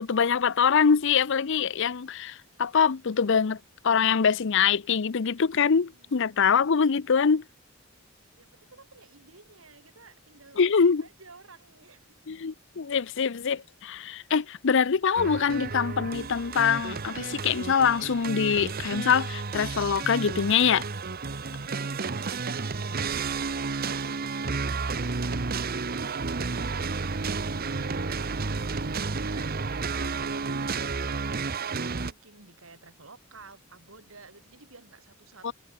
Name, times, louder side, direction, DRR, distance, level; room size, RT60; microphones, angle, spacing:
voice 1, 0.0-3.6 3.8-7.4 10.6-11.0 12.3-20.9 35.4-35.5, left 6 dB, 65° left, 0.6 m, -24 dB
voice 2, 8.4-10.7 11.0-12.2 22.3-24.0 31.6-35.5, right 3 dB, 75° right, 4.3 m, -53 dB
sound 1, 15.2-32.1, right 4 dB, 45° right, 1.0 m, -31 dB
head